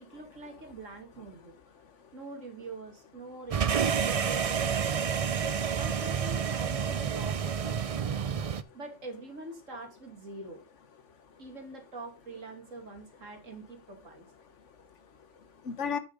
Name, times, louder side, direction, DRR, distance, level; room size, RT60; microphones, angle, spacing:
voice 1, 0.0-1.5 2.1-5.0 5.8-7.7 8.7-10.6 11.4-14.3, right 2 dB, 85° right, 2.7 m, -44 dB
voice 2, 1.8-2.1 5.3-5.6 8.0-8.2 11.1-11.4 14.6-16.0, left 6 dB, 70° left, 1.5 m, -39 dB
sound 1, 3.5-8.6, right 7 dB, 50° right, 0.4 m, -29 dB
8.6 x 6.4 x 5.4 m
omnidirectional pair, 1.3 m